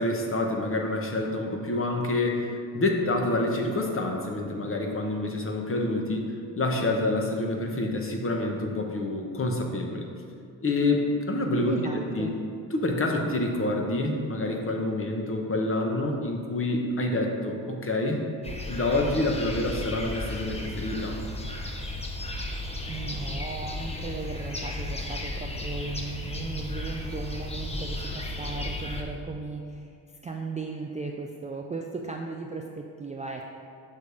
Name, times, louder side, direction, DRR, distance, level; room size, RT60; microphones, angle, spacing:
voice 1, 0.0-10.1 10.6-12.3 12.7-18.3 18.7-21.2, left 2 dB, 30° left, 2 dB, 1.0 m, -27 dB
voice 2, 11.7-12.4 22.9-29.9 30.2-33.5, right 3 dB, 20° right, 1 dB, 0.3 m, -36 dB
sound 1, 18.4-29.0, left 1 dB, 15° left, 0.8 m, -34 dB
6.4 x 3.3 x 5.4 m, 2.3 s
supercardioid pair, 65°, 43 cm